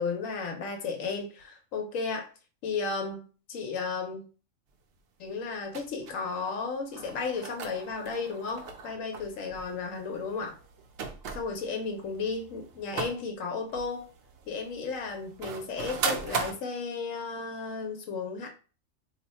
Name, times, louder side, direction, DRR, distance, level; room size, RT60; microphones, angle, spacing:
voice 1, 0.0-2.3 2.6-4.3 5.2-10.5 11.3-14.1 14.5-18.5, left 4 dB, 90° left, 3 dB, 1.1 m, -34 dB
sound 1, 5.7-6.1 6.9-13.3 13.7-16.5, right 5 dB, 65° right, 0.7 m, -38 dB
2.8 x 2.1 x 4.1 m, 0.35 s
omnidirectional pair, 1.3 m